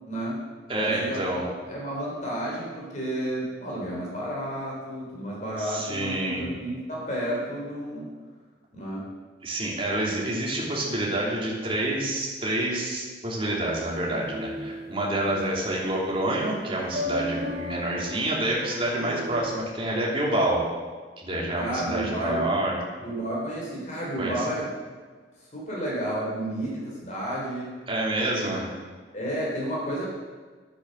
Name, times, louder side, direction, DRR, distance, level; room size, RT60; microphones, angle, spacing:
voice 1, 0.1-0.4 0.8-8.1 8.7-9.0 15.3-15.5 21.6-22.5 23.0-24.7 25.5-27.7 28.4-28.5 29.1-30.1, right 1 dB, 40° left, -4 dB, 3.5 m, -31 dB
voice 2, 0.7-1.5 5.6-6.5 9.4-20.7 21.2-22.8 24.2-24.5 27.9-28.7, right 1 dB, 30° right, -4 dB, 2.9 m, -28 dB
sound 1, 13.9-19.6, left 1 dB, 60° right, 1.9 m, -36 dB
10.5 x 8.7 x 6.4 m, 1.5 s
head